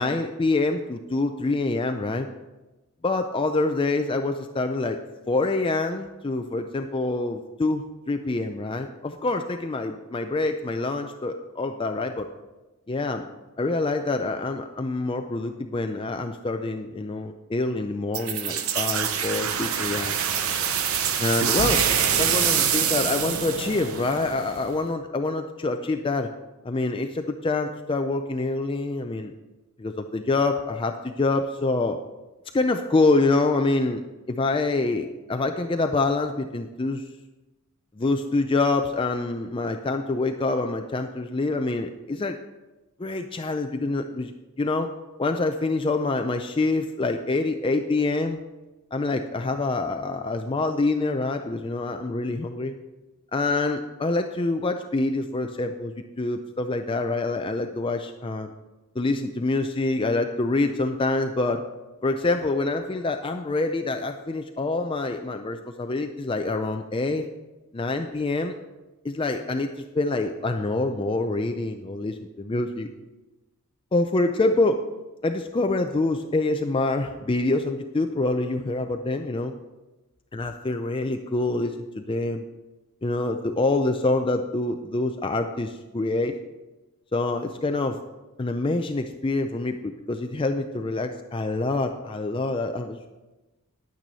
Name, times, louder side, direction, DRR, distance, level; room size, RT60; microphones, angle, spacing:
voice 1, 0.0-2.3 3.0-5.0 5.3-12.3 12.9-13.2 13.6-20.1 21.2-21.8 22.2-26.3 26.6-29.3 29.8-32.0 32.5-34.0 34.3-37.0 38.0-42.4 43.0-44.3 44.6-44.9 45.2-48.4 48.9-52.7 53.3-58.5 59.0-61.6 62.0-67.3 67.7-68.5 69.0-69.7 69.9-72.9 73.9-74.8 75.2-79.5 80.3-82.4 83.0-86.3 87.1-88.0 88.4-93.1, left 2 dB, 25° left, 6 dB, 0.4 m, -26 dB
sound 1, 18.1-24.7, right 8 dB, 70° right, 0.8 m, -25 dB
10.5 x 9.0 x 4.1 m, 1.1 s
head